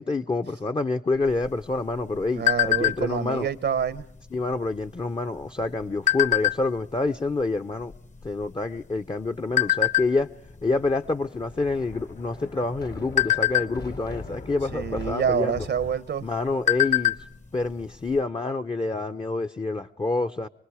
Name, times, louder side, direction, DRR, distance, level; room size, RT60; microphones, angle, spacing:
voice 1, 0.0-3.5 4.3-7.9 8.2-10.3 10.6-15.6 16.2-17.1 17.5-20.5, left 3 dB, 25° left, 0.7 m, -27 dB
sound 1, 1.3-3.3 3.7-4.0 4.3-4.7 5.4-6.9 7.5-7.6 7.8-9.1 9.6-10.1 10.6-10.8 11.1-11.4 11.8-12.3 12.8-14.2 15.3-15.4 15.8-15.9 16.3-17.3 17.6-17.7 18.1-18.2, left 14 dB, 40° left, 1.1 m, -23 dB
voice 2, 2.3-4.0 14.7-16.3, right 7 dB, 70° right, 0.9 m, -27 dB
Thunder, 10.4-15.9, left 3 dB, 65° left, 1.9 m, -41 dB
27.5 x 20.0 x 4.9 m
cardioid pair, 55°, 19 cm